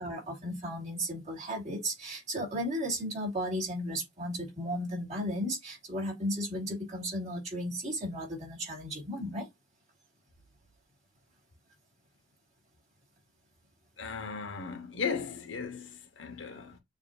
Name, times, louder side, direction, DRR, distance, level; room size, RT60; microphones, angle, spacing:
voice 1, 0.0-9.5, equal, 35° right, 2.7 m, -35 dB
voice 2, 14.0-16.8, left 5 dB, 70° left, 0.8 m, -36 dB
6.8 x 2.6 x 2.3 m
head